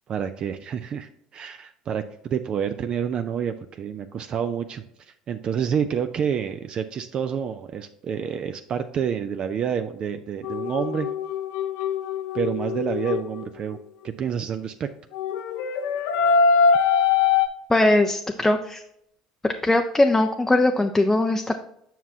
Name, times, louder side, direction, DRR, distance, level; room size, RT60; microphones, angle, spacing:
voice 1, 0.1-4.8 5.3-11.1 12.3-13.8 14.0-14.9, right 8 dB, 45° right, 9 dB, 0.4 m, -28 dB
sound 1, 10.4-13.4 15.1-17.5, left 5 dB, 65° left, 0.6 m, -22 dB
voice 2, 17.7-18.8 19.4-21.6, left 2 dB, 15° left, 4 dB, 0.5 m, -20 dB
7.4 x 5.8 x 2.8 m, 0.75 s
hypercardioid pair, 70°, 2 cm